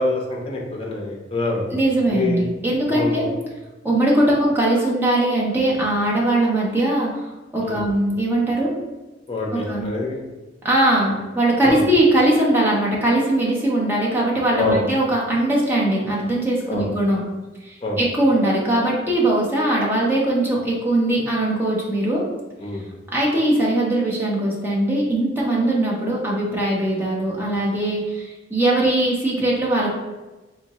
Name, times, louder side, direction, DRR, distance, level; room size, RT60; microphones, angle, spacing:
voice 1, 0.0-1.8 2.1-2.4 2.9-3.3 7.6-7.8 9.3-10.2 11.6-11.8 14.6-14.8 16.7-16.9 17.8-18.0 22.6-22.8, left 2 dB, 30° left, -1 dB, 0.7 m, -25 dB
voice 2, 1.7-3.3 3.8-8.7 9.5-9.9 10.6-17.2 17.6-22.2 23.1-29.9, right 1 dB, 10° right, -5 dB, 0.8 m, -20 dB
3.5 x 2.8 x 2.9 m, 1.2 s
head